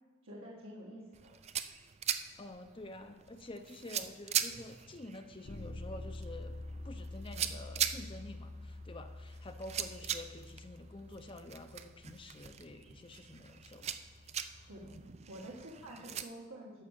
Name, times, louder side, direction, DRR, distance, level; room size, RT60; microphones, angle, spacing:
voice 1, 0.2-1.3 14.7-15.0 15.3-16.8, right 1 dB, 70° right, -4 dB, 1.5 m, -48 dB
sound 1, 1.1-16.2, right 9 dB, 30° right, 0.4 m, -41 dB
voice 2, 2.4-6.5 6.8-13.9 14.6-14.7, left 2 dB, 25° left, 7 dB, 0.6 m, -49 dB
Bass guitar, 5.5-15.3, left 2 dB, 75° left, 1.1 m, -48 dB
11.0 x 5.9 x 7.2 m, 1.2 s
head